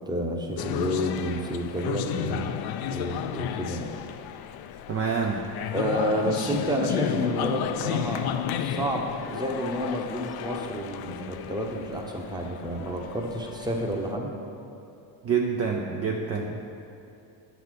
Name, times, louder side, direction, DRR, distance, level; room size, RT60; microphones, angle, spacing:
voice 1, 0.1-2.5 2.8-3.9 5.7-14.3, equal, 10° right, 1 dB, 0.9 m, -30 dB
sound 1, 0.6-14.1, left 9 dB, 65° left, 0.5 m, -33 dB
voice 2, 4.9-5.4 15.2-16.7, right 5 dB, 35° right, 1 dB, 0.6 m, -27 dB
8.0 x 4.1 x 6.4 m, 2.8 s
cardioid pair, 110°, 41 cm